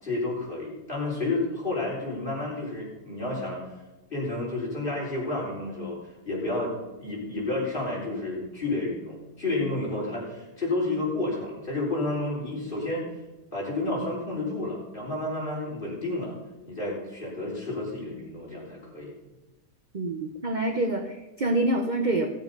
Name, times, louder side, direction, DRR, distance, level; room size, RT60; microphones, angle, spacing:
voice 1, 0.0-3.6 4.1-6.0 6.3-6.7 7.0-13.1 13.5-16.3 16.7-19.1, left 2 dB, 30° left, -4 dB, 4.5 m, -30 dB
voice 2, 19.9-22.4, right 1 dB, 35° right, 4 dB, 0.8 m, -27 dB
17.0 x 7.2 x 5.4 m, 1.1 s
omnidirectional pair, 1.7 m